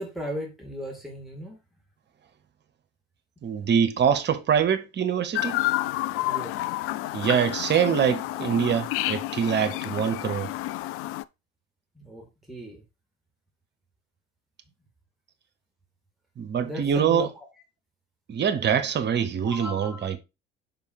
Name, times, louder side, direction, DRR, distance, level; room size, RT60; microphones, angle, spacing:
voice 1, 0.0-1.6 6.2-6.5 11.9-12.8 16.6-17.5 19.4-20.1, equal, ahead, 2.5 m, -37 dB
voice 2, 3.4-5.6 7.1-10.5 16.4-17.3 18.3-20.2, right 8 dB, 35° right, 1.0 m, -24 dB
Chirp tweet, 5.4-11.2, left 16 dB, 50° left, 0.4 m, -30 dB
5.3 x 5.3 x 4.6 m
figure-of-eight pair, 55°, 29 cm